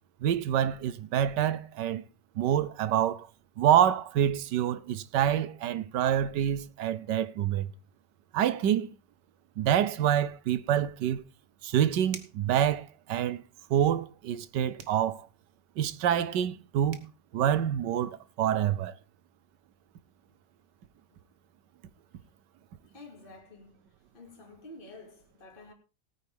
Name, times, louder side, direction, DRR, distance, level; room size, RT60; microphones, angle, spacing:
voice 1, 0.2-2.0 2.4-3.3 3.6-7.7 8.3-8.9 9.6-11.2 11.6-13.4 13.7-15.3 15.8-17.1 17.3-18.9, right 10 dB, 80° right, 1.4 m, -27 dB
sound 1, 12.1-12.5 14.8-15.1 16.6-16.7 16.9-17.1, right 6 dB, 45° right, 1.4 m, -45 dB
voice 2, 22.9-23.8 24.1-25.7, left 2 dB, 30° left, 2.6 m, -50 dB
18.0 x 9.3 x 3.5 m
omnidirectional pair, 1.9 m